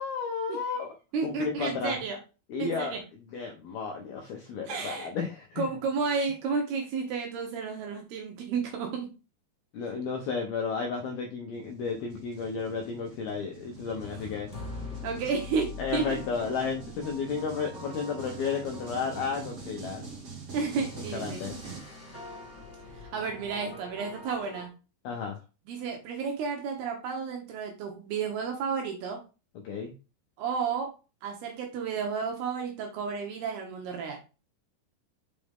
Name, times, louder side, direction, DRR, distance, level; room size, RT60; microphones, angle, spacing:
voice 1, 0.0-1.0 1.2-2.0 2.5-3.0 3.3-5.7 9.7-14.5 15.8-20.1 21.1-21.6 25.0-25.4 29.6-29.9, left 5 dB, 80° left, 2 dB, 2.2 m, -33 dB
voice 2, 1.1-2.2 2.6-3.0 4.7-5.1 5.6-9.1 15.0-16.2 20.5-21.4 23.0-24.7 25.7-29.2 30.4-30.9 31.2-34.2, right 5 dB, 70° right, 2 dB, 2.6 m, -32 dB
sound 1, 11.5-21.8, right 4 dB, 45° right, 2.0 m, -44 dB
sound 2, 13.6-24.7, left 2 dB, 15° left, 1.4 m, -44 dB
6.2 x 5.4 x 3.5 m, 0.31 s
omnidirectional pair, 5.5 m